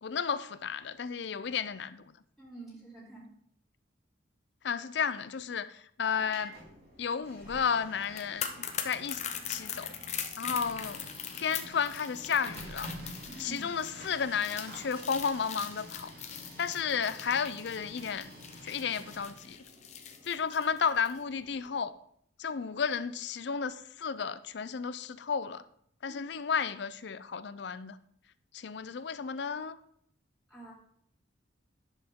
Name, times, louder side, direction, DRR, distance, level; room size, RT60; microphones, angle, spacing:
voice 1, 0.0-2.0 4.6-6.5 7.0-8.5 8.8-9.2 9.5-9.9 10.4-11.0 11.4-12.9 13.4-16.1 16.6-18.3 18.6-19.6 20.3-21.9 22.4-25.6 26.0-28.0 28.5-29.8, left 6 dB, 65° left, 0.5 m, -32 dB
voice 2, 2.4-3.3 13.3-13.7 26.1-26.2 30.5-30.7, right 2 dB, ahead, 2.3 m, -47 dB
Printer, 6.0-21.8, equal, 55° right, 2.9 m, -49 dB
sound 1, 8.0-21.2 21.5-21.7, left 8 dB, 35° left, 0.7 m, -41 dB
10.5 x 6.5 x 3.7 m
head